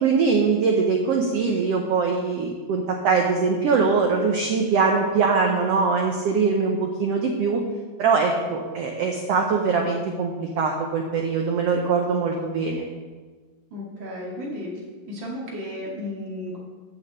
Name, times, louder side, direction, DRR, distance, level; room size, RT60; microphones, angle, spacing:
voice 1, 0.0-7.6 8.0-12.9, right 5 dB, 90° right, 2 dB, 1.3 m, -22 dB
voice 2, 13.7-14.7 15.1-16.6, left 1 dB, 40° right, -3 dB, 2.5 m, -33 dB
8.0 x 5.9 x 8.0 m, 1.4 s
omnidirectional pair, 3.9 m